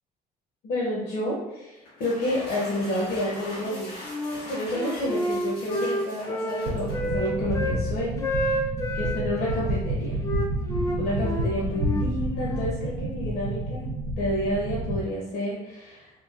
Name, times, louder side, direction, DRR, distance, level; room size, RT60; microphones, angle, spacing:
voice 1, 0.6-3.9 4.4-8.7 8.9-10.2 11.0-13.8 14.2-16.1, left 1 dB, 65° left, -5 dB, 0.6 m, -30 dB
sound 1, 1.8-7.4, left 1 dB, 85° left, 1.3 m, -41 dB
Wind instrument woodwind instrument, 3.6-4.4 4.7-7.8 8.2-9.7 10.2-12.7, equal, 20° left, 0.3 m, -30 dB
sound 2, 6.6-15.0, right 1 dB, 85° right, 0.5 m, -29 dB
3.0 x 2.2 x 2.3 m, 0.96 s
cardioid pair, 110°, 17 cm